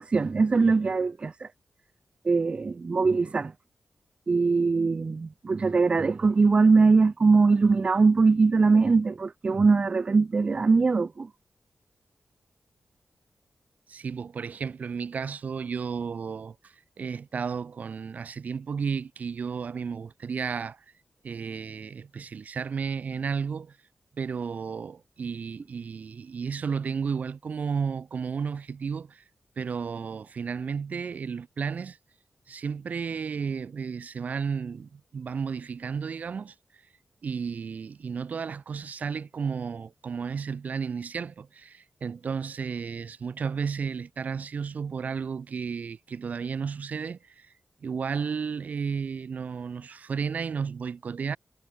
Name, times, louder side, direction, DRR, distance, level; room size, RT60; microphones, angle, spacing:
voice 1, 0.0-1.5 2.2-3.5 4.3-11.3, right 4 dB, 45° right, 0.5 m, -22 dB
voice 2, 13.9-20.8 21.2-23.8 24.2-29.2 29.6-32.0 32.5-36.5 37.2-47.5 47.8-51.4, right 6 dB, 70° right, 1.8 m, -33 dB
cardioid pair, 75°, 3 cm